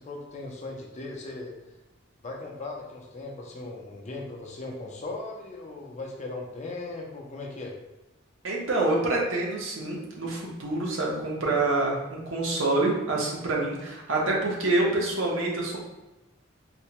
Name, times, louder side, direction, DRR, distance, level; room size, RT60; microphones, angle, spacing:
voice 1, 0.0-1.5 2.2-7.7, left 2 dB, 35° left, -1 dB, 0.6 m, -38 dB
voice 2, 8.4-15.8, right 2 dB, 75° right, -3 dB, 0.8 m, -26 dB
4.3 x 2.2 x 2.9 m, 1.0 s
head